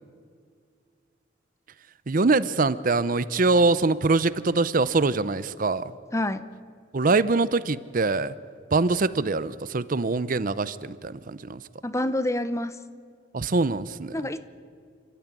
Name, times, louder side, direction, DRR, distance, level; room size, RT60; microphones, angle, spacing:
voice 1, 2.1-5.9 6.9-8.3 8.7-11.6 13.3-14.2, right 3 dB, 45° right, 16 dB, 0.6 m, -23 dB
voice 2, 6.1-6.4 11.8-12.8 14.1-14.4, left 1 dB, 15° left, 13 dB, 0.8 m, -27 dB
29.0 x 13.0 x 9.9 m, 2.2 s
head